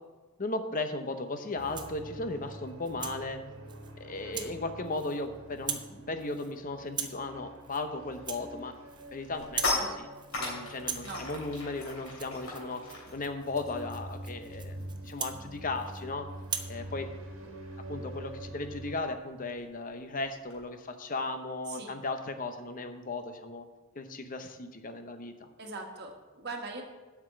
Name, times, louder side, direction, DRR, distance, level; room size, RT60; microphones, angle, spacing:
voice 1, 0.4-3.4 4.0-8.7 9.1-9.7 10.0-10.1 10.4-12.8 13.1-16.3 16.7-17.1 17.9-23.7 24.0-25.5, left 2 dB, 40° left, 7 dB, 0.8 m, -36 dB
Rattle (instrument), 1.5-2.0 2.5-3.2 3.7-3.9 4.3-4.5 4.8-5.3 5.5-5.9 6.2-6.5 6.9-7.2 7.6-7.8 8.1-9.1 9.4-9.8 10.1-10.5 10.7-16.0 16.4-16.7, right 7 dB, 20° right, 0.6 m, -40 dB
sound 1, 1.6-19.0, right 1 dB, 70° right, 1.6 m, -46 dB
sound 2, 8.2-8.5 8.9-14.8 15.1-15.3 15.6-20.6, left 2 dB, 80° left, 3.3 m, -39 dB
voice 2, 25.6-26.8, right 3 dB, 50° right, 2 dB, 1.5 m, -41 dB
7.9 x 6.0 x 7.7 m, 1.2 s
head